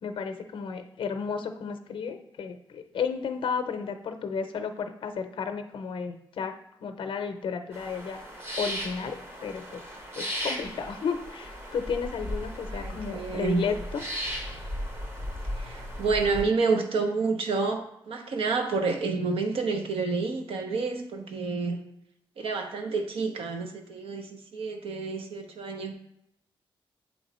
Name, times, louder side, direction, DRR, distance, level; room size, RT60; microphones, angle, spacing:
voice 1, 0.0-6.5 6.8-8.2 8.6-9.8 10.2-14.0, left 6 dB, 65° left, 0.6 m, -33 dB
sound 1, 7.7-16.4, equal, 25° right, 0.9 m, -36 dB
voice 2, 12.7-13.6 15.6-21.8 22.4-25.9, right 4 dB, 75° right, 0.8 m, -29 dB
8.1 x 3.1 x 4.2 m
wide cardioid pair, 170°, 9 cm